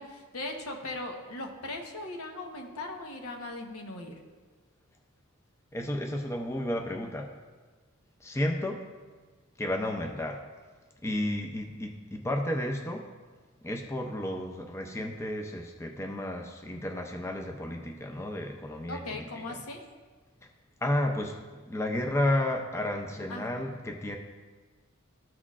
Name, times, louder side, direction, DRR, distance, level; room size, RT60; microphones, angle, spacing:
voice 1, 0.0-4.2 18.9-19.9 23.3-23.7, left 2 dB, 80° left, 2 dB, 1.1 m, -39 dB
voice 2, 5.7-7.3 8.2-8.8 9.6-10.4 11.0-13.1 13.6-19.6 20.8-24.2, left 1 dB, 10° left, 2 dB, 0.5 m, -32 dB
13.5 x 6.0 x 2.4 m, 1.4 s
head